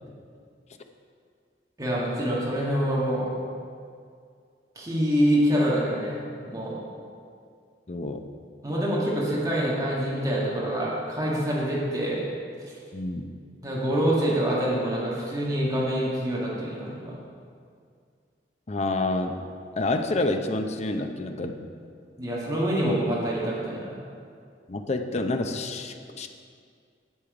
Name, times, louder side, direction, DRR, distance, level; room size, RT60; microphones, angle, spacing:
voice 1, 1.8-3.3 4.8-6.8 8.6-12.3 13.6-17.2 22.2-24.0, equal, 20° right, -6 dB, 1.8 m, -26 dB
voice 2, 7.9-8.2 12.9-13.3 18.7-19.4 19.8-21.6 24.7-26.3, left 2 dB, 40° left, 6 dB, 0.6 m, -28 dB
10.0 x 7.6 x 4.9 m, 2.2 s
head